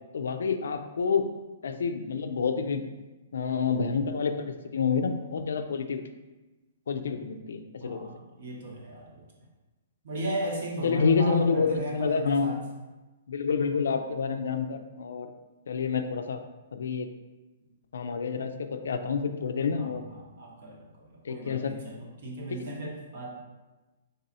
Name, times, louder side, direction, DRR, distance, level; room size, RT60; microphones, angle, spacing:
voice 1, 0.1-1.3 1.6-2.8 3.3-6.0 6.9-8.1 10.8-12.6 13.3-15.3 15.7-16.4 16.7-17.1 17.9-20.0 21.2-21.7 22.5-22.6, left 5 dB, 80° left, 7 dB, 0.4 m, -28 dB
voice 2, 7.8-9.3 10.0-12.6 19.7-23.3, right 1 dB, 45° right, -2 dB, 0.9 m, -36 dB
4.1 x 3.9 x 2.6 m, 1.1 s
hypercardioid pair, 175°, 0 cm